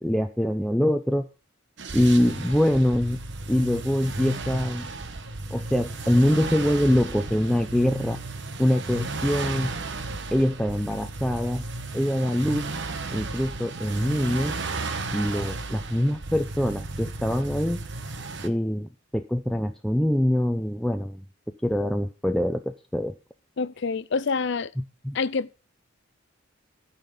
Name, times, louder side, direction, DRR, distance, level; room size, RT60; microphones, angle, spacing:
voice 1, 0.0-1.2 1.9-3.2 3.5-4.9 5.5-8.2 8.6-9.7 10.3-11.6 11.9-12.7 13.1-14.5 15.1-17.8 18.4-21.2 21.6-23.1 25.0-25.2, equal, ahead, 0.5 m, -24 dB
sound 1, 1.8-18.5, right 3 dB, 60° right, 1.2 m, -34 dB
voice 2, 23.6-24.7 25.1-25.6, left 4 dB, 60° left, 0.6 m, -27 dB
13.0 x 5.7 x 6.9 m
head